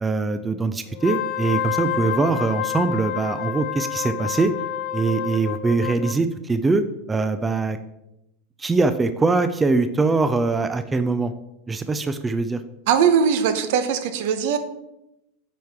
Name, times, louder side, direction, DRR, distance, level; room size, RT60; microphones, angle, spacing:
voice 1, 0.0-4.5 4.9-7.8 8.6-11.3 11.7-12.6, right 3 dB, 15° right, 10 dB, 0.4 m, -22 dB
Wind instrument woodwind instrument, 0.9-6.2, left 10 dB, 50° left, 0.6 m, -28 dB
voice 2, 12.9-14.6, right 7 dB, 65° right, 10 dB, 0.8 m, -20 dB
9.1 x 4.7 x 3.5 m, 0.88 s
supercardioid pair, 140°, 0 cm